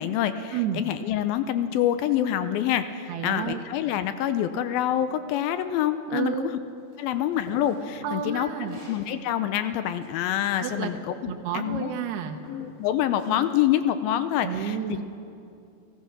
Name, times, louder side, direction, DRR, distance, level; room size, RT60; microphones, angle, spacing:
voice 1, 0.0-6.5 7.0-8.5 8.9-11.9 12.5-14.8, left 11 dB, 80° left, 11 dB, 2.3 m, -26 dB
voice 2, 0.5-0.8 3.1-3.6 6.1-6.5 8.0-8.8 10.6-10.9 11.3-12.4 14.4-15.0, right 8 dB, 80° right, 4 dB, 3.1 m, -30 dB
sound 1, 6.9-9.0 9.6-11.1 11.8-12.0 12.4-13.5, right 1 dB, 45° right, 7.5 m, -47 dB
29.5 x 16.0 x 6.1 m, 2.5 s
omnidirectional pair, 4.6 m